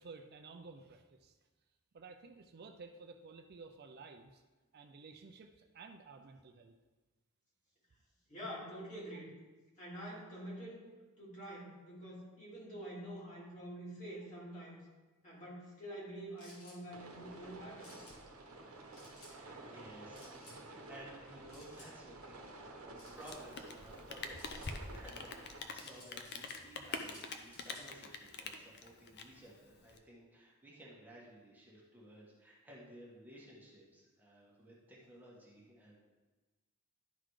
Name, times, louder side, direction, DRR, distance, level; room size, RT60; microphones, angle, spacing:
voice 1, 0.0-1.4 1.9-4.4 4.7-6.7 16.3-16.4, right 4 dB, 50° right, 6 dB, 0.4 m, -53 dB
voice 2, 8.3-9.3 9.8-10.8 11.2-14.8 15.2-18.1, right 1 dB, 35° left, -6 dB, 2.7 m, -47 dB
sound 1, 16.4-16.8 17.8-18.2 18.9-19.3 20.1-20.6 21.5-21.9 22.9-23.4 24.3-24.7 25.7-26.6 26.9-27.9, left 1 dB, 80° left, 2.4 m, -58 dB
sound 2, 16.9-25.6, right 2 dB, 80° right, 1.0 m, -52 dB
voice 3, 19.3-36.0, right 1 dB, 10° right, -5 dB, 1.6 m, -56 dB
Rain, 23.1-30.0, left 4 dB, 50° left, 0.7 m, -45 dB
11.5 x 4.0 x 4.8 m, 1.2 s
head